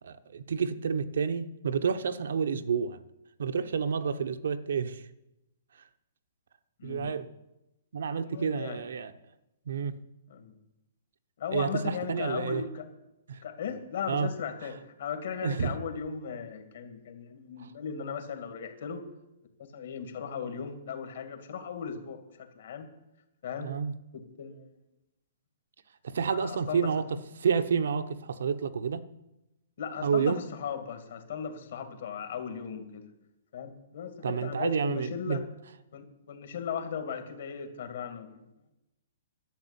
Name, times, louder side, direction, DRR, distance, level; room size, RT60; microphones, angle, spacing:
voice 1, 0.0-3.0 3.4-5.0 6.8-7.3 7.9-9.1 9.7-9.9 11.5-12.6 13.3-13.4 14.1-14.3 15.4-15.7 17.6-17.7 23.6-23.9 26.0-29.0 30.0-30.4 34.2-35.4, right 6 dB, 70° right, 10 dB, 1.0 m, -29 dB
voice 2, 6.8-7.1 8.1-8.8 10.3-10.6 11.4-12.9 13.4-19.0 19.6-22.9 23.4-23.7 24.1-24.7 26.3-26.9 29.8-33.1 33.5-35.4 35.9-38.4, left 7 dB, 55° left, 6 dB, 2.3 m, -37 dB
11.5 x 7.5 x 10.0 m, 0.93 s
hypercardioid pair, 175°, 0 cm